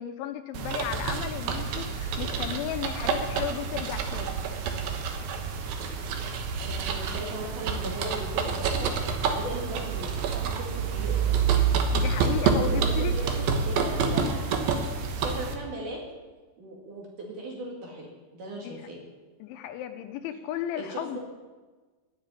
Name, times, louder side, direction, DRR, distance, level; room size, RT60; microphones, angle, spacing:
voice 1, 0.0-4.4 11.9-13.2 18.6-18.8 19.4-21.2, left 11 dB, 80° left, 8 dB, 3.3 m, -34 dB
sound 1, 0.5-15.5, right 5 dB, 70° right, 2.4 m, -28 dB
voice 2, 6.3-11.4 12.6-13.1 13.6-14.5 15.1-16.0 16.6-19.0 20.7-21.2, right 1 dB, 50° right, -1 dB, 3.3 m, -38 dB
11.5 x 10.0 x 9.1 m, 1.3 s
omnidirectional pair, 5.4 m